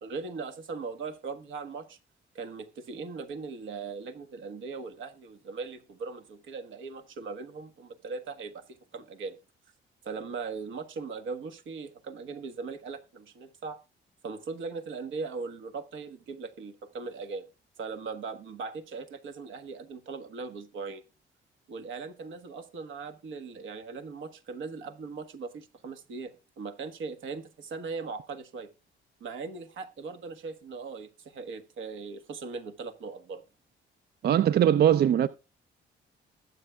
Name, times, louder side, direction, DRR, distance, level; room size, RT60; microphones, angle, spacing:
voice 1, 0.0-2.0 2.3-9.4 10.0-13.8 14.2-17.5 17.8-21.0 21.7-28.7 29.2-33.4, right 4 dB, 80° right, 1.4 m, -39 dB
voice 2, 34.2-35.3, right 10 dB, 55° right, 0.4 m, -21 dB
20.0 x 7.9 x 2.3 m
cardioid pair, 90°, 20 cm